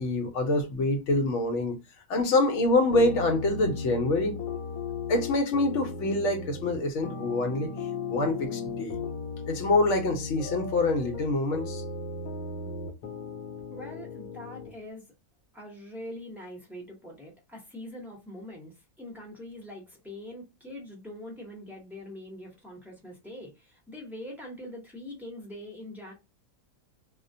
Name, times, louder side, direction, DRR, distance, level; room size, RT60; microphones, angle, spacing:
voice 1, 0.0-1.8 2.1-4.3 5.1-7.7 8.1-9.0 9.5-11.8, left 2 dB, 65° left, 0.9 m, -26 dB
sound 1, 2.9-14.7, left 4 dB, 90° left, 1.0 m, -36 dB
voice 2, 13.7-15.1 15.5-26.1, left 1 dB, ahead, 0.6 m, -43 dB
2.3 x 2.1 x 2.6 m
omnidirectional pair, 1.4 m